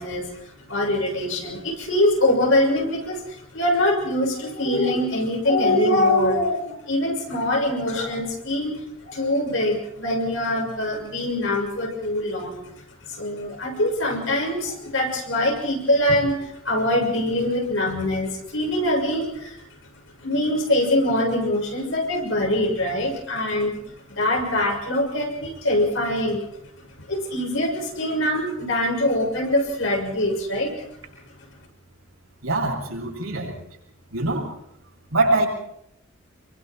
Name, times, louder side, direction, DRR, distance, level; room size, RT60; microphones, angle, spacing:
voice 1, 0.0-12.7 13.1-19.6 20.2-23.8 24.1-26.4 27.1-30.7, left 1 dB, 65° left, 1 dB, 6.6 m, -23 dB
voice 2, 32.4-33.5 34.1-34.5 35.1-35.5, right 2 dB, 80° right, -1 dB, 7.7 m, -23 dB
27.0 x 24.0 x 4.6 m, 0.74 s
head